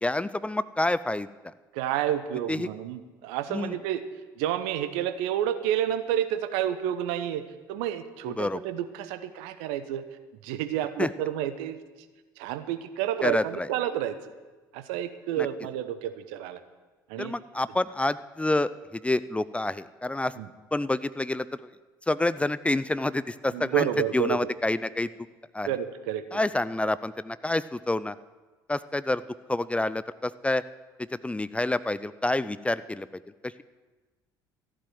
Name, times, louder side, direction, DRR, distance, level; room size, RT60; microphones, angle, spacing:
voice 1, 0.0-1.5 2.5-2.7 3.5-3.8 8.4-8.6 11.0-11.1 13.2-13.7 15.4-15.5 17.2-20.3 20.7-21.7 22.1-25.1 25.5-25.7 26.3-28.2 28.7-29.2 29.5-30.6 31.0-33.1 33.4-33.6, left 2 dB, 10° left, 16 dB, 0.5 m, -28 dB
voice 2, 1.7-4.0 4.4-7.4 7.7-10.0 10.4-11.8 12.4-14.2 14.7-16.6 17.1-17.3 20.4-20.5 23.5-24.4 25.7-26.2, right 11 dB, 65° right, 11 dB, 1.0 m, -30 dB
14.5 x 7.7 x 9.3 m, 1.3 s
figure-of-eight pair, 55°, 11 cm